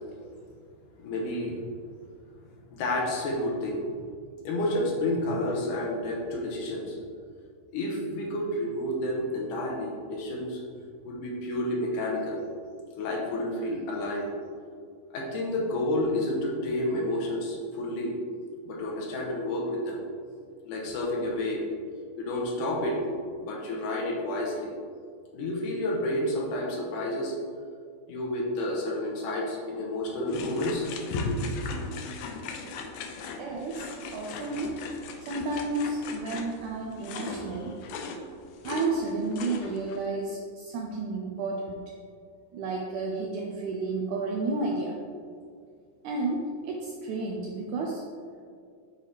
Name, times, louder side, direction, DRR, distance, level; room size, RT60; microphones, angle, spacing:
voice 1, 1.0-1.6 2.7-3.9 4.4-7.0 7.7-10.6 11.1-12.4 13.0-14.3 15.1-18.2 18.6-20.0 20.7-21.7 22.2-23.0 23.4-24.7 25.3-27.3 28.1-31.4, left 1 dB, 75° left, -2 dB, 2.3 m, -30 dB
sound 1, 30.3-40.0, left 4 dB, 90° left, 1.6 m, -39 dB
voice 2, 33.4-34.8 35.2-37.8 38.6-42.0 42.5-45.0 46.0-48.0, right 3 dB, 85° right, 0 dB, 1.7 m, -32 dB
7.7 x 4.6 x 3.3 m, 2.2 s
omnidirectional pair, 4.0 m